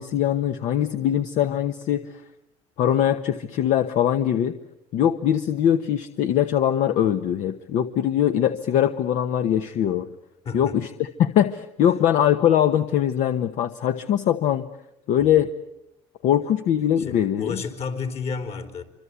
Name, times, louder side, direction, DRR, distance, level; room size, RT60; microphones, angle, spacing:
voice 1, 0.0-2.2 2.8-4.6 4.9-10.1 10.5-14.7 15.1-15.5 16.2-17.6, left 10 dB, 70° left, 9 dB, 1.2 m, -22 dB
voice 2, 10.4-10.8 15.2-15.3 17.0-18.8, left 5 dB, 50° left, 8 dB, 4.0 m, -31 dB
25.5 x 25.5 x 8.4 m, 0.88 s
cardioid pair, 110°, 13 cm